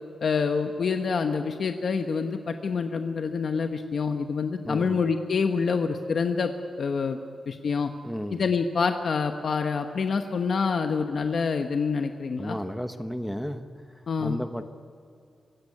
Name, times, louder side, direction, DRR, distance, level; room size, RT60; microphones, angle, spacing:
voice 1, 0.2-6.5 6.8-7.2 7.5-7.9 8.3-12.6 14.1-14.4, left 5 dB, 55° left, 6 dB, 1.1 m, -26 dB
voice 2, 4.6-5.0 8.0-8.4 12.4-13.7 14.2-14.6, equal, ahead, 8 dB, 0.9 m, -33 dB
24.5 x 16.5 x 9.8 m, 2.5 s
wide cardioid pair, 170°, 0 cm